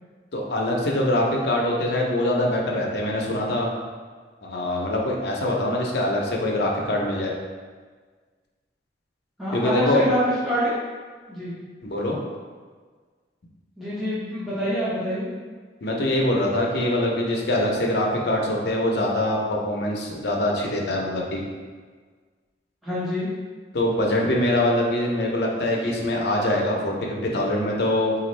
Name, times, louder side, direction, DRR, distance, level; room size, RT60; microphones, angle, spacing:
voice 1, 0.3-3.7 4.4-7.3 9.5-10.0 11.8-12.2 15.8-21.4 23.7-28.1, left 1 dB, 65° left, -1 dB, 0.6 m, -23 dB
voice 2, 9.4-10.7 11.3-11.5 13.8-15.3 22.8-23.3, equal, ahead, -12 dB, 0.7 m, -25 dB
4.1 x 2.4 x 3.2 m, 1.5 s
head